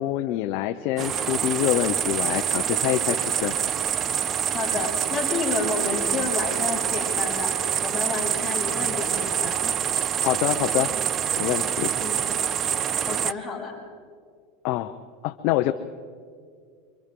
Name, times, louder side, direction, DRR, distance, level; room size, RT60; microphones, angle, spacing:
voice 1, 0.0-3.5 10.2-10.9 11.4-11.9 14.6-14.9 15.2-15.7, left 14 dB, 55° left, 7 dB, 0.7 m, -25 dB
sound 1, 1.0-13.3, right 9 dB, 35° right, 0.6 m, -26 dB
voice 2, 4.5-7.5 7.8-9.6 12.0-12.3 13.1-13.8, left 4 dB, 15° left, -4 dB, 6.6 m, -30 dB
29.0 x 25.0 x 3.8 m, 2.1 s
supercardioid pair, 125°, 0 cm